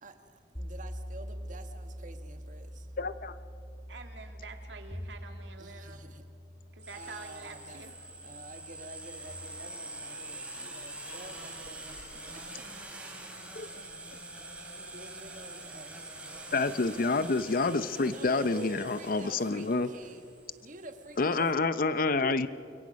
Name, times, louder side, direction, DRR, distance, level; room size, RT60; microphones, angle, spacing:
voice 1, 0.0-2.9 5.6-6.2 6.9-7.8 8.2-13.1 13.7-13.9 14.7-16.4 18.0-20.2 20.6-21.5, right 2 dB, 45° right, 1.4 m, -49 dB
sound 1, 0.6-9.3, equal, 15° left, 1.8 m, -44 dB
voice 2, 3.0-3.4 13.6-13.7 16.5-19.9 21.2-22.5, left 3 dB, 50° left, 0.7 m, -28 dB
voice 3, 3.9-6.0 6.7-7.9, right 4 dB, 70° right, 2.3 m, -47 dB
sound 2, 6.8-21.5, right 2 dB, 5° right, 2.9 m, -45 dB
28.5 x 22.5 x 5.3 m
head